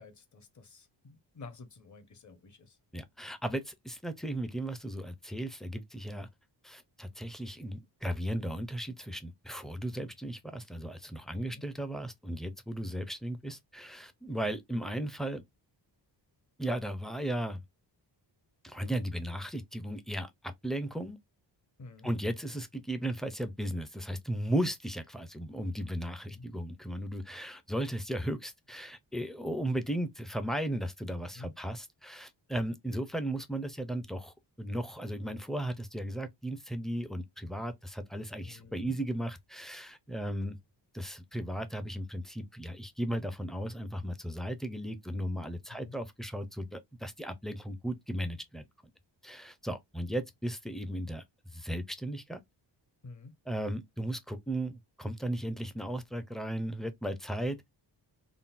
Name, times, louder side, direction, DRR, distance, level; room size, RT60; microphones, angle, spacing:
voice 1, 0.0-2.8 11.4-11.6 21.8-22.1 26.3-26.5 31.3-31.5 38.4-38.9 45.7-45.9 53.0-53.3, left 3 dB, 40° left, 0.9 m, -50 dB
voice 2, 2.9-6.3 6.6-15.4 16.6-17.6 18.6-21.2 22.0-40.6 40.9-48.7 49.2-51.2 51.5-52.4 53.5-57.7, right 1 dB, ahead, 0.4 m, -36 dB
3.7 x 2.0 x 2.4 m
wide cardioid pair, 110°, 46 cm